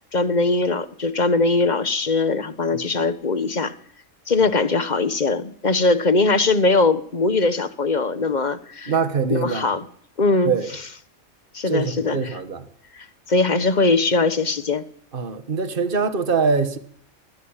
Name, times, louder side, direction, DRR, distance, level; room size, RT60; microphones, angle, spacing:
voice 1, 0.0-3.7 4.3-9.0 9.3-9.8 10.2-10.5 11.5-12.4 12.9-14.8, left 3 dB, 35° left, 1.4 m, -21 dB
voice 2, 8.9-9.7 10.5-10.7 11.7-12.6 15.1-16.8, right 5 dB, 45° right, 1.7 m, -23 dB
22.0 x 16.5 x 9.0 m
omnidirectional pair, 1.3 m